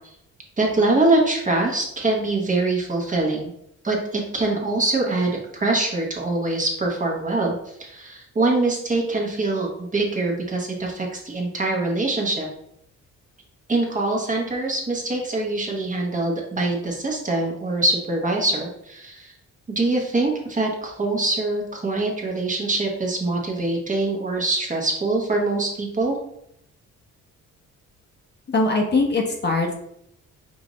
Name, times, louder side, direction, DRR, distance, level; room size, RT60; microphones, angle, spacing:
voice 1, 0.6-3.5 3.8-7.5 7.8-12.4 13.7-19.3 19.7-26.1, right 2 dB, 25° right, -1 dB, 1.1 m, -24 dB
voice 2, 28.5-29.7, left 3 dB, 35° left, 2 dB, 0.8 m, -21 dB
4.9 x 2.6 x 3.1 m, 0.74 s
cardioid pair, 90°, 30 cm